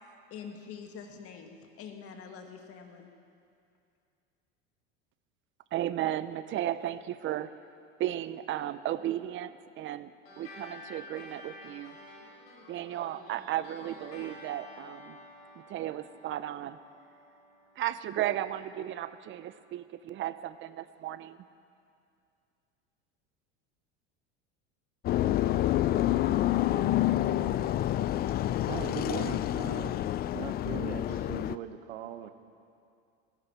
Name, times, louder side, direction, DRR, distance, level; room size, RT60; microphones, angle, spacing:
voice 1, 0.3-3.1, left 6 dB, 50° left, 4 dB, 1.9 m, -45 dB
voice 2, 5.7-7.5 8.0-10.1 10.4-12.0 12.7-15.2 15.6-16.8 17.8-21.4, right 12 dB, 40° right, 14 dB, 0.7 m, -34 dB
sound 1, 10.3-19.1, left 2 dB, 90° left, 4.2 m, -51 dB
sound 2, 25.0-31.5, left 13 dB, 35° left, 0.4 m, -28 dB
voice 3, 28.7-30.0 30.3-32.3, right 10 dB, 85° right, 10 dB, 1.0 m, -39 dB
18.0 x 15.5 x 4.4 m, 2.4 s
supercardioid pair, 105°, 30 cm